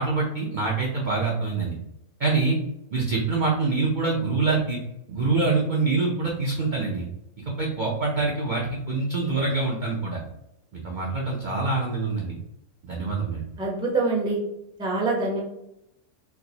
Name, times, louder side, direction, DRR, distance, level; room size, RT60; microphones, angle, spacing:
voice 1, 0.0-1.7 2.2-2.6 2.9-4.8 5.1-7.1 7.6-10.2 10.7-12.4 12.8-13.4, right 3 dB, 55° right, -3 dB, 0.5 m, -25 dB
voice 2, 13.6-14.4 14.8-15.4, right 3 dB, 5° right, -3 dB, 0.5 m, -25 dB
4.5 x 2.0 x 2.7 m, 0.84 s
omnidirectional pair, 1.5 m